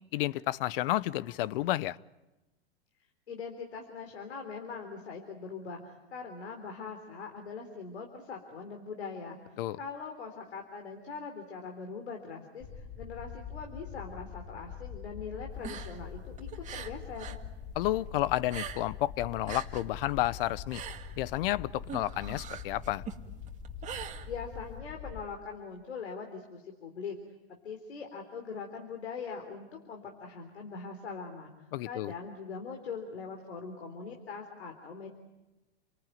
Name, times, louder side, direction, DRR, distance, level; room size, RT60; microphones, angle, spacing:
voice 1, 0.1-2.0 9.6-9.8 17.7-20.8 21.2-23.0 31.7-32.1, left 15 dB, 60° left, 20 dB, 0.9 m, -31 dB
voice 2, 3.3-9.4 9.8-17.4 24.3-27.2 27.6-31.5 31.8-35.1, left 5 dB, 90° left, 3 dB, 3.9 m, -42 dB
sound 1, 12.6-25.2, left 7 dB, 20° left, 2.7 m, -44 dB
sound 2, 15.5-17.5 17.7-19.1 19.3-24.8, right 8 dB, 25° right, 2.0 m, -43 dB
30.0 x 20.0 x 9.3 m, 1.1 s
hypercardioid pair, 125°, 32 cm